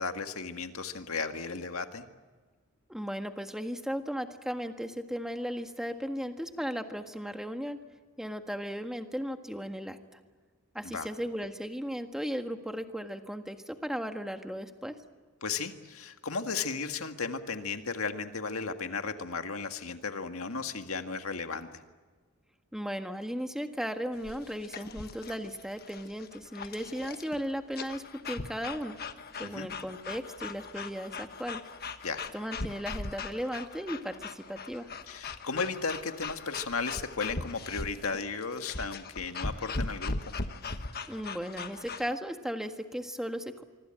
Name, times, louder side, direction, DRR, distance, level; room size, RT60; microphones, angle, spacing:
voice 1, 0.0-2.0 10.8-11.1 15.4-21.7 29.4-29.7 32.0-32.2 35.1-40.2, left 4 dB, 75° left, 6 dB, 1.9 m, -35 dB
voice 2, 2.9-7.8 8.2-10.2 10.7-14.9 22.7-29.0 29.4-31.6 32.3-34.9 41.1-43.6, equal, ahead, 6 dB, 1.6 m, -36 dB
sound 1, 24.2-42.1, left 3 dB, 45° left, 1.3 m, -40 dB
25.0 x 25.0 x 9.0 m, 1.4 s
head